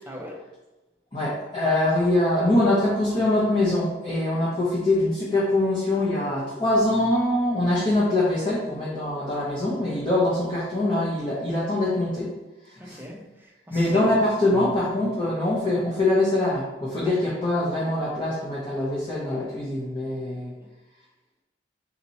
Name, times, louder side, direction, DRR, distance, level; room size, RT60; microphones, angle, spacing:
voice 1, 0.1-0.5 12.8-14.1 14.5-14.7 20.6-20.7, equal, 10° right, 0.6 m, -39 dB
voice 2, 1.1-12.3 12.8-13.0 13.7-20.5, left 1 dB, 30° left, 1.0 m, -23 dB
4.2 x 3.0 x 4.1 m
head